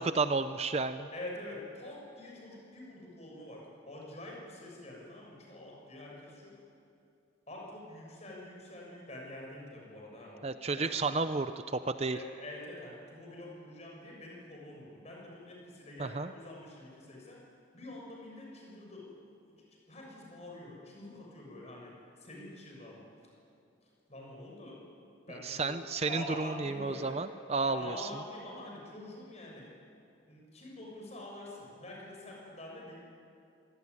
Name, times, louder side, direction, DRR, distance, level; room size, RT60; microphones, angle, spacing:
voice 1, 0.0-1.1 10.4-12.2 16.0-16.3 25.4-28.1, right 3 dB, 35° right, 11 dB, 0.6 m, -32 dB
voice 2, 1.1-6.6 7.5-11.1 12.1-17.4 17.7-19.1 19.4-19.6 19.9-23.1 23.8-24.8 25.3-25.7 26.1-27.2 27.6-29.8 30.3-33.0, left 1 dB, 35° left, -2 dB, 6.8 m, -46 dB
25.5 x 18.5 x 9.8 m, 2.5 s
head